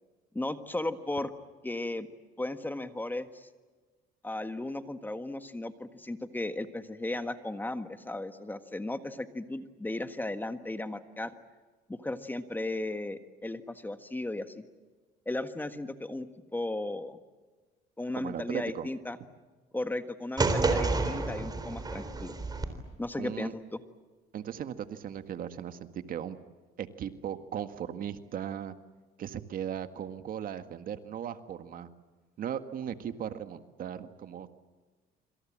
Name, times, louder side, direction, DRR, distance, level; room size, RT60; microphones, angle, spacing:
voice 1, 0.3-1.3 1.6-2.1 2.4-3.5 4.2-11.3 11.9-14.6 15.2-17.2 18.0-19.2 19.7-22.3 23.0-23.8, left 2 dB, 10° left, 9 dB, 1.6 m, -35 dB
voice 2, 18.2-18.9 23.2-23.5 24.3-26.4 26.8-28.7 29.2-31.9 32.4-34.5, right 9 dB, 55° right, 9 dB, 1.7 m, -37 dB
sound 1, 20.4-22.7, right 3 dB, 25° right, 3.9 m, -29 dB
26.5 x 26.0 x 7.5 m, 1.3 s
cardioid pair, 110°, 17 cm